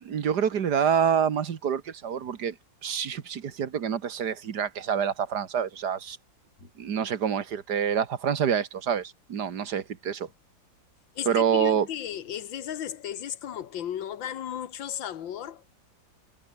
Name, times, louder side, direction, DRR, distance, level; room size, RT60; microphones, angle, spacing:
voice 1, 0.0-2.6 2.8-6.2 6.8-10.3 11.3-11.9, right 7 dB, 60° right, 1.9 m, -27 dB
voice 2, 11.2-15.6, left 10 dB, 90° left, 2.0 m, -35 dB
omnidirectional pair, 2.0 m